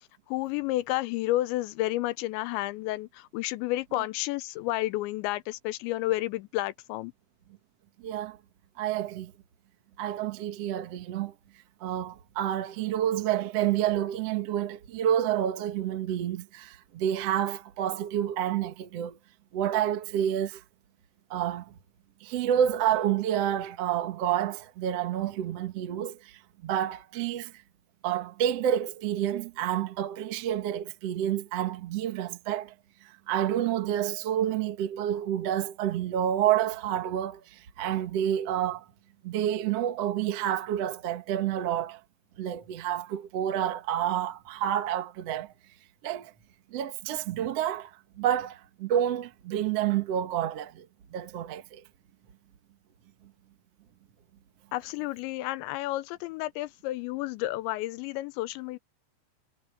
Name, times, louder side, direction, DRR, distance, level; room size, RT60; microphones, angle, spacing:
voice 1, 0.3-7.1 54.7-58.8, left 17 dB, 90° left, 3.0 m, -31 dB
voice 2, 8.0-8.4 8.8-9.3 10.0-11.3 11.8-19.2 19.5-20.6 21.3-21.7 22.2-27.5 28.0-32.7 33.0-38.8 39.2-42.0 42.4-45.5 46.0-46.3 46.7-50.8 51.1-51.8, right 10 dB, 70° right, 1.5 m, -29 dB
omnidirectional pair, 5.2 m